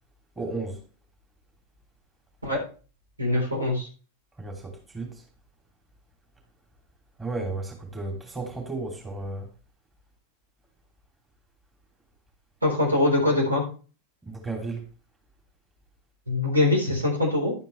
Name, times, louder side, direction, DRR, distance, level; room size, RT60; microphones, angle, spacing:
voice 1, 0.4-0.8 4.4-5.1 7.2-9.5 14.3-14.8, right 3 dB, 15° right, 2.9 m, -33 dB
voice 2, 3.2-3.9 12.6-13.6 16.3-17.5, left 2 dB, 80° right, 3.9 m, -23 dB
11.0 x 9.1 x 3.3 m
figure-of-eight pair, 90°, 0 cm